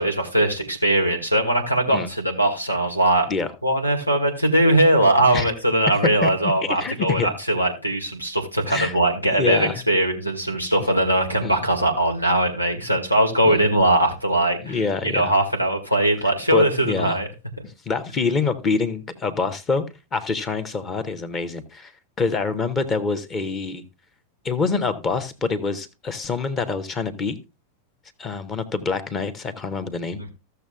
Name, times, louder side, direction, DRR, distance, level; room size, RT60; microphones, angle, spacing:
voice 1, 0.0-3.3 3.6-14.8 15.0-17.3 17.6-17.7, right 1 dB, 90° left, 1.7 m, -20 dB
voice 2, 6.2-7.3 8.7-9.0 9.3-9.7 11.4-11.6 13.4-13.6 14.6-15.3 16.5-17.2 17.6-19.8 20.1-21.9 22.2-23.8 24.4-27.4 28.2-30.2, left 4 dB, 25° left, 1.1 m, -26 dB
15.0 x 6.8 x 2.3 m
figure-of-eight pair, 90°, 0 cm